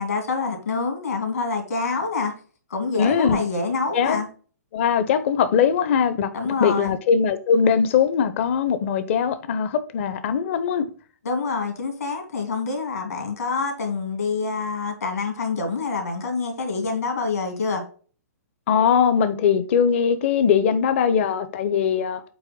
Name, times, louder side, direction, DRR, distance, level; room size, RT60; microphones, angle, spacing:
voice 1, 0.0-2.3 2.7-4.3 6.3-7.0 11.2-17.8, left 4 dB, 70° left, 2.6 m, -26 dB
voice 2, 3.0-3.4 3.9-4.2 4.7-6.3 6.6-10.9 18.7-22.2, left 7 dB, 50° left, 0.9 m, -21 dB
8.2 x 3.3 x 5.4 m
figure-of-eight pair, 120°, 9 cm